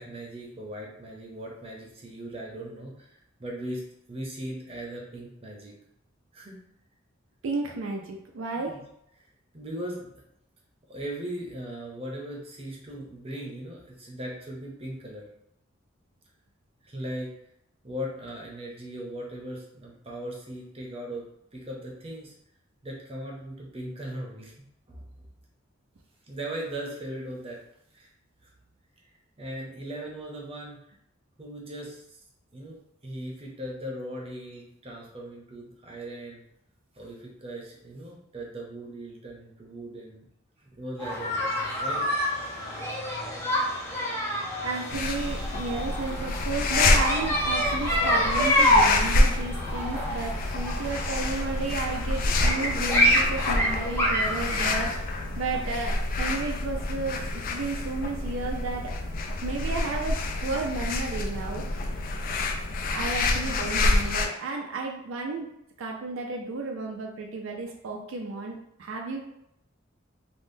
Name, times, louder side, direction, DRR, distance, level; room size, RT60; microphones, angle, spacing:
voice 1, 0.0-5.7 6.3-6.6 8.6-8.8 9.2-9.3 9.5-10.1 10.9-15.3 16.8-17.3 17.8-22.3 22.8-25.1 26.3-27.6 27.9-28.1 28.4-28.5 29.4-30.8 31.4-32.0 32.5-36.4 36.9-40.2 40.6-41.3 41.8-42.0, right 1 dB, 30° right, -1 dB, 0.6 m, -38 dB
voice 2, 7.4-8.8 44.6-59.0 59.4-61.9 62.9-65.5 65.8-69.2, right 3 dB, 75° right, 1 dB, 0.4 m, -33 dB
sound 1, 41.0-54.7, equal, 15° left, 0.6 m, -27 dB
sound 2, 44.9-64.3, left 2 dB, 45° left, 0.3 m, -28 dB
3.5 x 2.1 x 2.6 m, 0.77 s
head